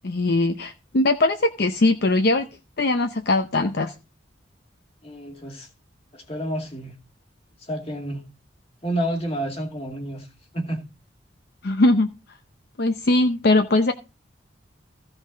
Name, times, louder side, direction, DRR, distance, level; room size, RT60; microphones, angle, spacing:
voice 1, 0.0-2.5 2.8-3.9 11.6-12.1 12.8-13.9, left 2 dB, 55° left, 0.7 m, -20 dB
voice 2, 5.0-5.7 6.1-6.9 7.6-8.2 8.8-10.3 10.5-10.8, right 1 dB, 30° left, 2.2 m, -29 dB
15.5 x 5.9 x 3.9 m
head